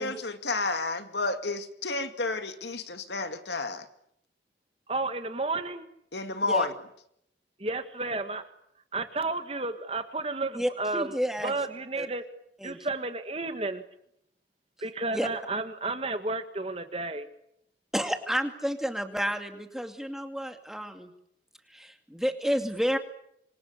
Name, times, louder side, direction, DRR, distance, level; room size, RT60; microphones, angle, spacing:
voice 1, 0.0-3.9 6.1-6.7, left 3 dB, 70° left, 8 dB, 2.3 m, -31 dB
voice 2, 4.9-5.9 7.6-8.4 8.9-11.1 11.4-12.2 12.6-13.8 14.8-17.3, right 3 dB, 30° right, 9 dB, 1.9 m, -32 dB
voice 3, 10.5-11.5 12.0-12.1 12.6-12.8 15.1-15.3 17.9-21.1 21.7-23.0, equal, ahead, 6 dB, 2.4 m, -30 dB
27.0 x 24.0 x 8.3 m, 0.75 s
head